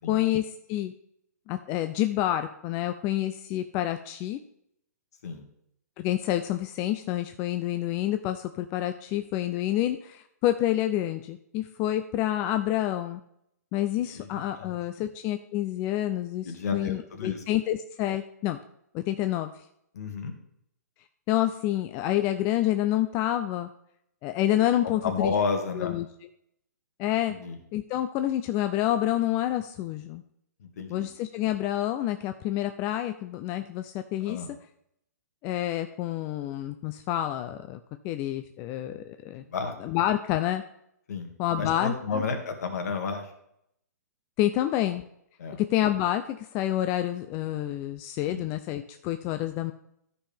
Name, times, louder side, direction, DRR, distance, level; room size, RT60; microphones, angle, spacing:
voice 1, 0.1-0.9 1.5-4.4 6.0-13.2 13.7-18.6 18.9-19.5 21.3-23.7 24.2-25.3 25.8-26.1 27.0-27.3 27.7-30.2 30.9-34.4 35.4-37.8 38.0-39.4 39.8-40.6 41.4-42.2 44.4-45.0 45.7-49.7, left 13 dB, 25° left, 8 dB, 0.4 m, -28 dB
voice 2, 16.4-17.4 19.9-20.3 24.8-26.0 27.3-27.6 30.6-31.1 34.3-34.5 39.4-39.7 41.1-41.3 41.6-43.3 45.4-45.6 48.3-48.4, left 5 dB, 60° left, 5 dB, 1.9 m, -31 dB
13.0 x 5.6 x 3.4 m, 0.74 s
hypercardioid pair, 140°, 10 cm